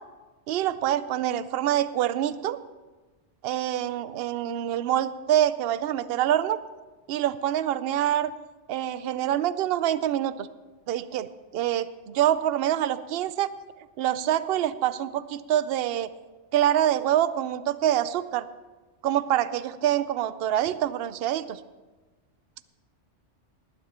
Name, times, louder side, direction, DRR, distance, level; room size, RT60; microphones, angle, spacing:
voice 1, 0.5-2.6 3.4-6.6 7.1-8.3 8.7-10.5 10.9-13.5 14.0-16.1 16.5-18.5 19.0-21.6, right 11 dB, 65° right, 15 dB, 0.7 m, -26 dB
19.0 x 9.5 x 4.3 m, 1.2 s
omnidirectional pair, 1.2 m